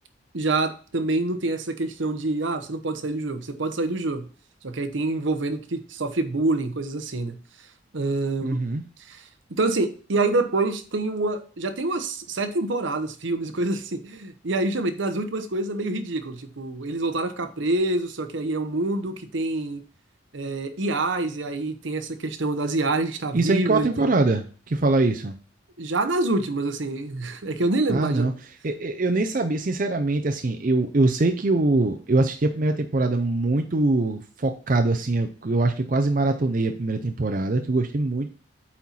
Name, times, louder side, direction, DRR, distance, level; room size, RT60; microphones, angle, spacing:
voice 1, 0.3-4.3 4.6-7.4 7.9-8.6 9.1-9.3 9.6-19.8 20.3-24.1 25.8-28.3, right 2 dB, 75° right, 9 dB, 0.9 m, -26 dB
voice 2, 8.4-8.8 23.3-25.4 27.9-28.3 28.6-38.3, right 2 dB, 45° right, 5 dB, 0.5 m, -23 dB
8.4 x 4.4 x 4.0 m, 0.40 s
head